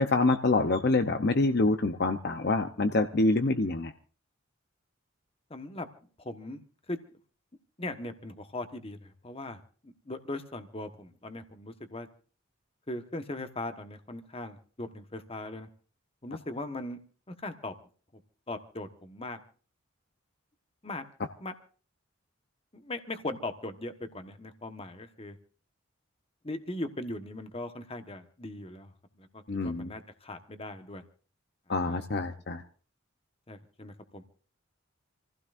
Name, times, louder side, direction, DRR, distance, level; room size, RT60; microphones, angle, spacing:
voice 1, 0.0-3.9 29.5-29.9 31.7-32.6, left 2 dB, 50° left, 7 dB, 0.8 m, -26 dB
voice 2, 5.5-5.9 6.2-6.6 6.9-7.0 7.8-12.1 12.9-15.7 16.2-17.0 17.3-17.7 18.5-19.4 20.8-21.0 21.4-21.5 22.7-25.4 26.4-28.9 29.2-31.0 31.7-32.1 33.5-34.2, left 2 dB, 30° left, 8 dB, 1.3 m, -39 dB
28.0 x 16.0 x 2.6 m, 0.41 s
head